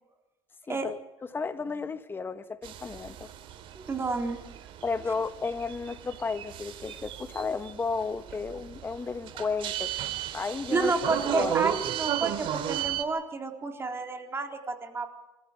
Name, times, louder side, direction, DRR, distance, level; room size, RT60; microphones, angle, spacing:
voice 1, 0.7-1.0 1.3-3.3 4.8-10.0 10.3-10.9 11.3-11.5, left 4 dB, 20° left, 1.6 m, -33 dB
Train Service to Portsmouth, 2.6-13.0, right 10 dB, 55° right, 3.7 m, -35 dB
voice 2, 3.7-4.5 10.7-15.1, right 4 dB, 25° right, 3.9 m, -30 dB
27.5 x 14.5 x 8.2 m
supercardioid pair, 115°, 11 cm